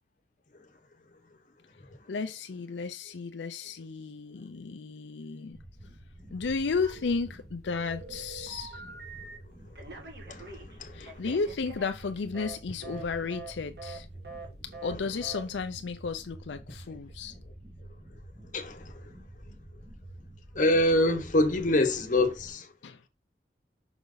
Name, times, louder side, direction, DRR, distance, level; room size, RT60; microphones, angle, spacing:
voice 1, 2.1-5.6 6.3-8.8 10.9-14.1 14.6-17.3 22.8-23.1, left 4 dB, 80° left, 0.5 m, -33 dB
sound 1, 5.5-22.5, right 1 dB, 25° right, 2.5 m, -48 dB
Telephone, 6.8-7.4 7.8-9.4 9.7-12.6 12.8-13.0 13.3-13.5 13.8-14.0 14.2-14.5 14.7-14.9 15.2-15.4, right 3 dB, 60° right, 1.7 m, -44 dB
voice 2, 10.3-11.1 18.5-18.9 20.5-22.7, left 1 dB, 45° left, 1.1 m, -25 dB
5.9 x 5.2 x 3.9 m
head